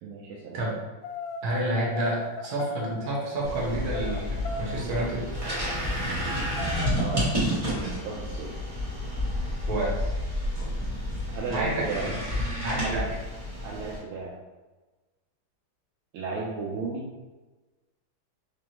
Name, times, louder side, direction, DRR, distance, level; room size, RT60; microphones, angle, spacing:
voice 1, 0.0-0.7 6.9-7.3 7.6-8.6 11.3-12.2 12.8-13.1 13.6-14.4 16.1-17.1, right 4 dB, 75° right, -4 dB, 1.4 m, -34 dB
sound 1, 1.0-3.4 3.9-4.8 5.2-5.3 5.6-6.3 6.6-7.4 7.8-8.0 8.6-8.9 9.5-9.8, left 4 dB, 75° left, 1.2 m, -38 dB
voice 2, 1.4-5.2 9.6-10.1 10.6-10.7 11.5-11.8 12.6-13.0, right 1 dB, 55° right, -4 dB, 1.4 m, -29 dB
sound 2, 3.4-14.0, equal, 25° right, 0.7 m, -30 dB
3.8 x 3.3 x 2.9 m, 1.2 s
omnidirectional pair, 2.4 m